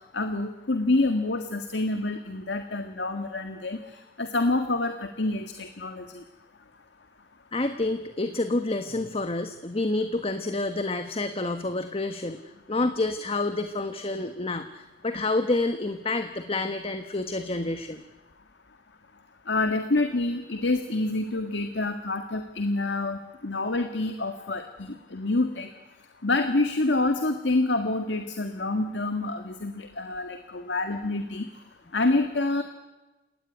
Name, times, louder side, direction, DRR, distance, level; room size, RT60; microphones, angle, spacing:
voice 1, 0.1-3.8 4.2-6.2 19.5-25.7 26.2-31.5 31.9-32.6, left 2 dB, 85° left, 6 dB, 1.8 m, -27 dB
voice 2, 7.5-18.0, left 2 dB, 35° left, 8 dB, 1.3 m, -28 dB
29.0 x 18.0 x 9.6 m, 1.1 s
head